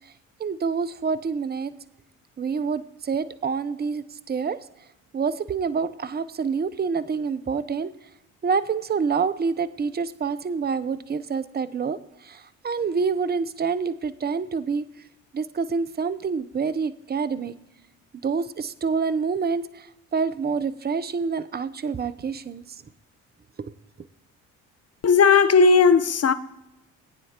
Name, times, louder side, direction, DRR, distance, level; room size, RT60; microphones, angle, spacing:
voice 1, 0.4-1.7 2.4-4.6 5.1-7.9 8.4-12.0 12.2-14.9 15.3-17.5 18.2-19.8 20.1-22.6 23.6-23.7, right 5 dB, 25° right, 0.7 m, -27 dB
voice 2, 25.0-26.3, left 5 dB, 35° left, 0.9 m, -16 dB
19.5 x 9.2 x 2.9 m
hypercardioid pair, 55°, 42 cm